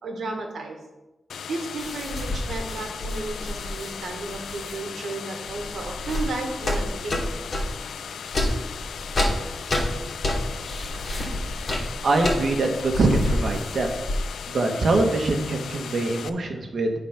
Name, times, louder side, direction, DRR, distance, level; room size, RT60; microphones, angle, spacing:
voice 1, 0.0-0.8 1.5-7.2, right 3 dB, 75° right, 2 dB, 1.6 m, -33 dB
sound 1, 1.3-16.3, left 7 dB, 85° left, 0.4 m, -37 dB
sound 2, 1.8-4.8 5.4-7.8 8.3-14.4, left 1 dB, 40° left, 2.9 m, -29 dB
voice 2, 12.0-13.9 14.5-16.9, right 2 dB, 60° right, 3 dB, 1.3 m, -23 dB
8.9 x 4.1 x 5.9 m, 1.0 s
wide cardioid pair, 115°, 0 cm